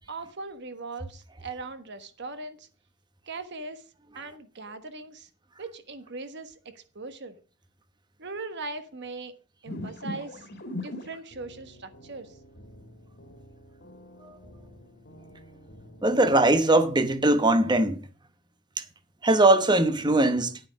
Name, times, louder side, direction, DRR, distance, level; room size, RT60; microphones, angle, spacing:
voice 1, 0.1-2.7 3.3-3.8 4.1-5.3 5.6-7.4 8.2-9.4 9.6-12.4, right 3 dB, 50° right, 1.3 m, -40 dB
sound 1, 9.7-16.6, left 1 dB, 45° left, 2.2 m, -43 dB
voice 2, 16.0-18.0 19.2-20.6, right 2 dB, 20° right, 1.0 m, -20 dB
10.0 x 8.7 x 5.2 m
head